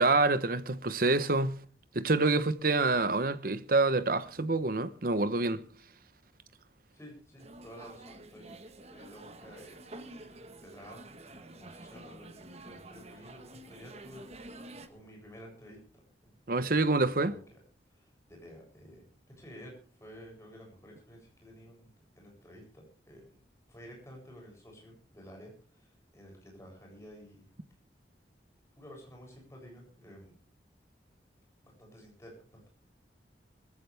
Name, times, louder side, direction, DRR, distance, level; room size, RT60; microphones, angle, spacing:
voice 1, 0.0-1.6 1.9-5.6 16.5-17.4, right 3 dB, 50° right, 1.0 m, -27 dB
voice 2, 6.9-9.8 10.2-10.3 10.6-17.6 17.8-19.0 19.4-21.9 22.2-23.4 23.7-27.5 28.7-30.3 31.6-32.7, equal, 15° left, 7.9 m, -52 dB
sound 1, 7.4-14.9, right 2 dB, 35° right, 1.5 m, -49 dB
21.5 x 15.0 x 3.5 m
head